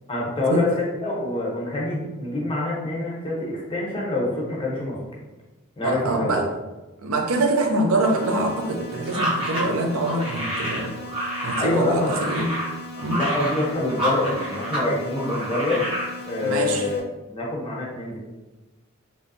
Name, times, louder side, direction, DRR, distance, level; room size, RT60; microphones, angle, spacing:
voice 1, 0.1-5.0 5.8-6.4 11.6-12.2 13.1-15.9 16.3-18.2, left 2 dB, 25° left, -4 dB, 0.7 m, -26 dB
voice 2, 5.8-6.5 7.0-10.9 11.4-12.5 13.0-13.2 16.4-16.9, right 2 dB, 85° right, 3 dB, 0.5 m, -24 dB
sound 1, 8.0-17.0, left 2 dB, 55° left, 0.5 m, -39 dB
sound 2, 9.1-14.9 15.2-16.1, right 1 dB, 25° right, 1.0 m, -28 dB
3.4 x 2.7 x 2.6 m, 1.1 s
head